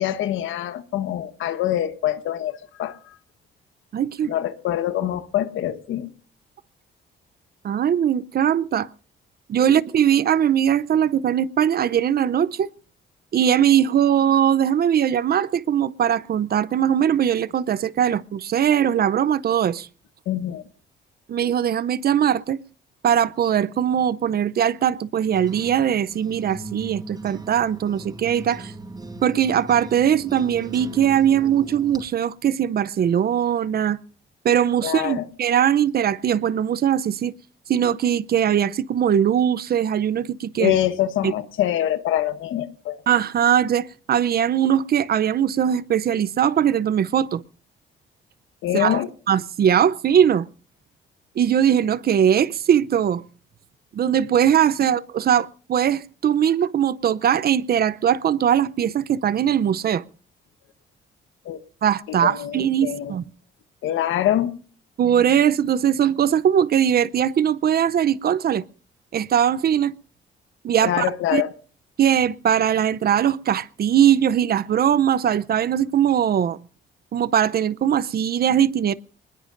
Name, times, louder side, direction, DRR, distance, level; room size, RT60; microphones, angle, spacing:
voice 1, 0.0-3.0 4.3-6.1 20.3-20.6 34.8-35.3 40.6-43.0 48.6-49.1 61.4-61.6 62.1-63.2 63.8-64.5 70.8-71.5, left 12 dB, 85° left, 1.2 m, -24 dB
voice 2, 3.9-4.3 7.6-8.9 9.5-12.7 13.3-19.9 21.3-22.6 23.0-28.7 29.2-34.0 34.4-37.3 37.7-40.8 41.2-41.3 43.1-47.4 48.7-49.0 49.3-50.5 51.4-53.2 53.9-60.0 61.8-63.2 65.0-68.6 69.1-69.9 70.6-71.1 71.3-71.4 72.0-76.6 77.1-78.9, right 9 dB, 50° right, 0.6 m, -20 dB
sound 1, 25.3-32.0, right 2 dB, 20° right, 4.7 m, -39 dB
24.0 x 20.0 x 2.6 m
cardioid pair, 90°, 20 cm